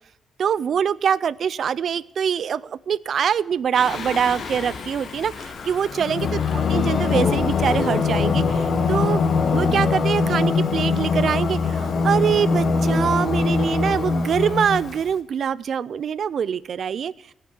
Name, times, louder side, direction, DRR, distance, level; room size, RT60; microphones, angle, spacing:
voice 1, 0.4-9.2 9.5-17.1, right 8 dB, 50° right, 19 dB, 0.4 m, -24 dB
Singing, 3.7-15.1, left 4 dB, 45° left, 1.1 m, -23 dB
17.5 x 5.8 x 7.2 m, 0.84 s
cardioid pair, 145°, 0 cm